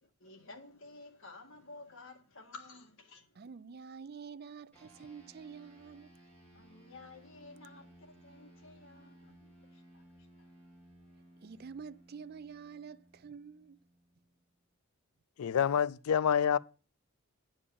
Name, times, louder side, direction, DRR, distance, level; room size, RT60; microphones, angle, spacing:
voice 1, 0.0-3.5 6.5-10.5, left 3 dB, 60° left, 1.7 m, -53 dB
voice 2, 3.4-6.1 11.4-13.8, right 6 dB, 45° right, 0.4 m, -48 dB
sound 1, 4.7-14.5, right 1 dB, 5° left, 3.8 m, -59 dB
voice 3, 15.4-16.6, left 8 dB, 80° left, 0.4 m, -27 dB
9.8 x 5.2 x 6.9 m
head